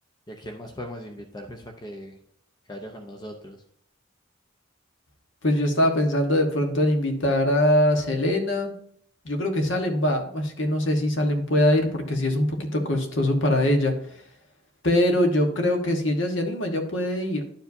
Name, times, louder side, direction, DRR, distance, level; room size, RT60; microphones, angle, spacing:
voice 1, 0.3-2.2 2.7-3.6, equal, 20° left, 3 dB, 0.7 m, -39 dB
voice 2, 5.4-8.7 9.2-14.0 14.8-17.4, left 1 dB, 70° left, 4 dB, 1.3 m, -22 dB
11.5 x 4.8 x 2.7 m, 0.64 s
head